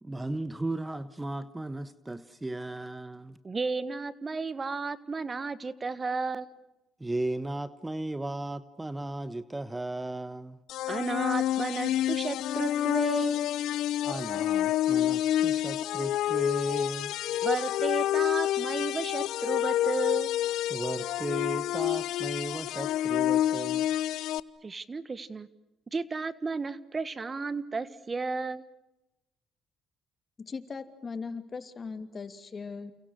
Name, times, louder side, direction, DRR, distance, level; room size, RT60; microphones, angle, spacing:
voice 1, 0.0-3.4 7.0-10.6 14.0-17.1 20.7-23.9, right 2 dB, 15° right, 14 dB, 1.2 m, -35 dB
voice 2, 3.4-6.5 10.9-13.4 17.4-20.3 24.6-25.5 25.9-28.6, right 4 dB, 30° right, 16 dB, 1.5 m, -33 dB
sound 1, 10.7-24.4, left 12 dB, 80° left, 0.9 m, -28 dB
voice 3, 30.5-32.9, left 4 dB, 35° left, 11 dB, 2.9 m, -39 dB
30.0 x 29.0 x 6.5 m, 0.97 s
cardioid pair, 85°, 0 cm